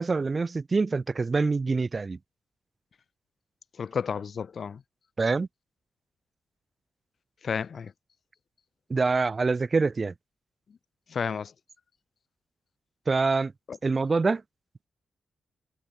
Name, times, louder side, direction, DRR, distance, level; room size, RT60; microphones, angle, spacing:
voice 1, 0.0-2.2 5.2-5.5 8.9-10.1 13.1-13.5 13.8-14.4, right 4 dB, 40° right, 0.3 m, -25 dB
voice 2, 3.8-4.8 7.4-7.9 11.1-11.5 13.7-13.8, left 6 dB, 60° left, 0.5 m, -31 dB
cardioid pair, 55°, 0 cm